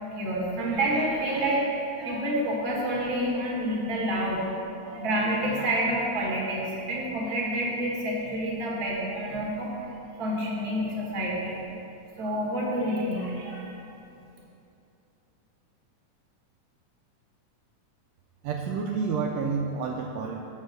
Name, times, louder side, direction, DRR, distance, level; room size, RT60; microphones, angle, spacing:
voice 1, 0.1-4.5 4.8-9.9 10.2-11.6 12.2-13.7, right 1 dB, 45° right, -3 dB, 1.4 m, -28 dB
voice 2, 18.4-20.4, right 5 dB, 85° right, 1 dB, 1.5 m, -29 dB
7.3 x 5.3 x 6.3 m, 2.8 s
omnidirectional pair, 3.6 m